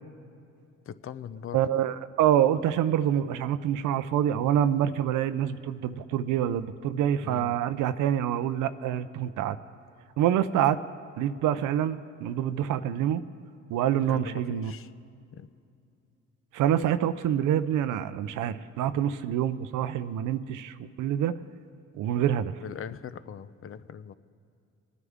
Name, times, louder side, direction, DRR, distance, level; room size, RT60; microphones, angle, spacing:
voice 1, 0.9-1.6 7.2-7.6 14.0-14.9 15.3-15.5 22.6-24.1, left 8 dB, 45° left, 14 dB, 0.6 m, -40 dB
voice 2, 1.5-9.6 10.2-10.8 11.2-13.2 13.7-14.7 16.5-21.4 21.9-22.5, right 10 dB, 85° right, 11 dB, 0.6 m, -26 dB
24.5 x 9.8 x 3.6 m, 2.5 s
cardioid pair, 90°, 30 cm